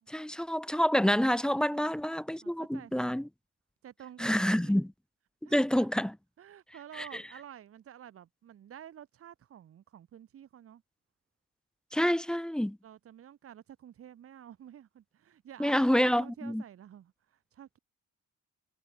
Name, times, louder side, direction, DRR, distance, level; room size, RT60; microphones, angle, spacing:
voice 1, 0.1-3.3 4.2-4.9 5.5-6.2 7.0-7.2 11.9-12.8 15.6-16.6, equal, 5° left, 0.4 m, -28 dB
voice 2, 2.4-3.1 3.8-4.8 5.4-5.9 6.4-10.8 12.8-17.8, right 10 dB, 50° right, 1.8 m, -50 dB
cardioid pair, 150°, 29 cm